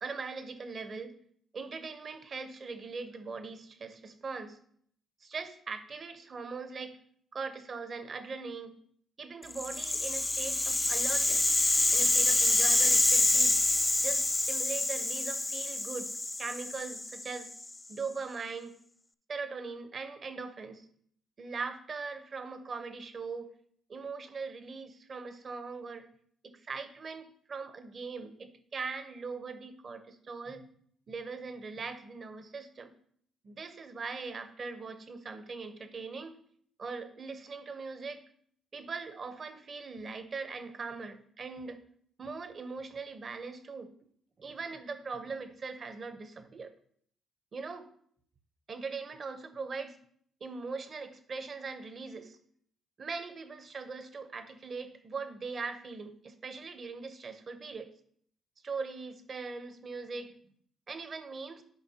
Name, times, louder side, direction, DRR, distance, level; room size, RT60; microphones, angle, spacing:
voice 1, 0.0-1.1 1.5-4.6 5.2-7.0 7.3-8.7 9.2-11.5 11.9-13.6 14.0-17.5 17.9-18.7 19.3-20.9 21.4-23.5 23.9-26.1 26.4-30.7 31.1-32.9 33.4-36.4 36.8-38.2 38.7-41.8 42.2-43.9 44.4-46.7 47.5-47.9 48.7-50.0 50.4-52.4 53.0-57.9 58.6-60.3 60.9-61.6, right 4 dB, 45° right, 10 dB, 0.8 m, -40 dB
Rattle (instrument), 9.5-17.7, left 2 dB, 15° left, 0.3 m, -27 dB
11.0 x 4.9 x 2.8 m, 0.62 s
cardioid pair, 90°, 0 cm